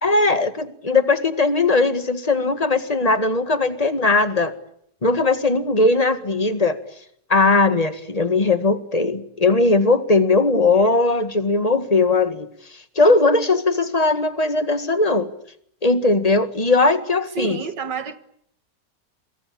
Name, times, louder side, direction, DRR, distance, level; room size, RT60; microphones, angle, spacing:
voice 1, 0.0-4.5 5.0-6.8 7.3-12.5 13.0-15.3 15.8-17.6, left 3 dB, 20° left, 1.8 m, -19 dB
voice 2, 17.4-18.2, right 7 dB, 85° right, 2.3 m, -29 dB
28.5 x 23.5 x 8.7 m
omnidirectional pair, 1.9 m